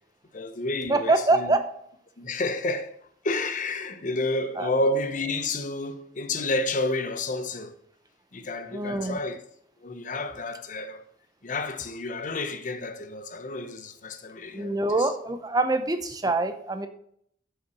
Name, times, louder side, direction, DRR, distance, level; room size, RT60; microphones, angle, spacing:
voice 1, 0.3-1.6 2.2-2.9 3.2-7.7 8.3-9.4 9.8-11.0 11.4-15.1, left 2 dB, 45° left, 0.8 m, -30 dB
voice 2, 0.9-1.6 4.6-4.8 8.7-9.2 14.5-16.9, right 2 dB, 20° right, 0.7 m, -25 dB
7.5 x 5.7 x 6.3 m
head